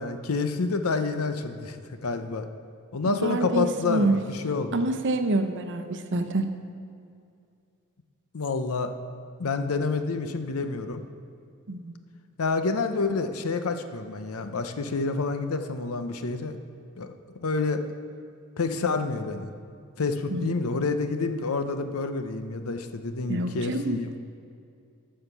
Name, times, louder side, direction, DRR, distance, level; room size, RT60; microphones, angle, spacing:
voice 1, 0.0-2.5 2.9-4.9 8.3-8.9 9.4-11.0 12.4-16.6 17.0-17.1 17.4-17.8 18.6-19.5 20.0-24.2, left 4 dB, 75° left, 8 dB, 0.7 m, -28 dB
voice 2, 3.1-4.1 4.7-6.5 11.7-12.0 20.3-20.6 23.3-24.0, right 2 dB, 55° right, 8 dB, 0.8 m, -27 dB
12.5 x 5.7 x 6.8 m, 2.4 s
head